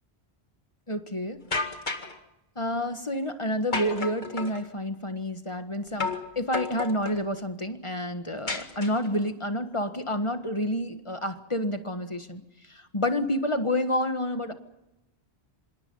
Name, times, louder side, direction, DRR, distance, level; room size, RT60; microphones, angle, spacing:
voice 1, 0.9-1.4 2.5-12.4 12.7-14.5, left 1 dB, 30° left, 8 dB, 1.6 m, -29 dB
sound 1, 1.5-2.2 3.7-4.6 6.0-6.3 6.5-7.2 8.5-9.2, left 3 dB, 45° left, 2.3 m, -32 dB
26.5 x 26.0 x 5.6 m, 0.95 s
omnidirectional pair, 1.1 m